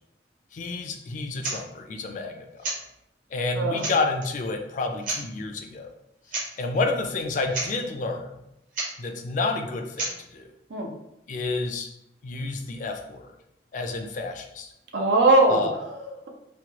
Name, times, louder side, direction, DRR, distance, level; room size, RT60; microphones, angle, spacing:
voice 1, 0.5-2.4 3.3-5.9 6.6-8.3 9.0-10.5 11.3-11.9 12.2-13.3 13.7-14.7 15.5-15.7, left 3 dB, 45° left, 5 dB, 0.3 m, -29 dB
sound 1, 1.4-1.6 2.6-2.8 3.4-3.5 3.8-4.3 5.0-5.2 6.3-6.5 6.7-6.8 7.2-7.3 7.5-7.7 8.7-8.9 10.0-10.2, right 2 dB, 50° right, 0.7 m, -30 dB
voice 2, 3.6-3.9 10.7-10.9 14.9-16.3, right 2 dB, 90° right, 2 dB, 0.5 m, -21 dB
3.0 x 2.2 x 2.9 m, 0.84 s
head